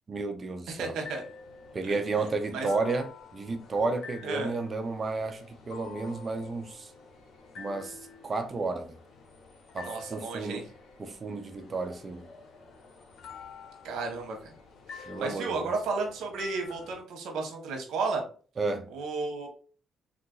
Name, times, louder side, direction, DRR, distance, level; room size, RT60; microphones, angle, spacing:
voice 1, 0.1-1.0 1.7-6.9 7.6-8.9 9.7-10.7 11.0-12.3 15.1-15.7 18.6-18.9, right 3 dB, 35° right, 0.5 m, -32 dB
voice 2, 0.7-1.2 1.8-2.3 2.5-2.7 4.2-4.5 9.8-10.6 13.8-14.5 14.9-18.2 18.9-19.5, right 3 dB, 80° right, 0.9 m, -33 dB
sound 1, 1.0-17.0, left 5 dB, 70° left, 0.8 m, -49 dB
3.7 x 2.5 x 2.3 m
cardioid pair, 90°, 0 cm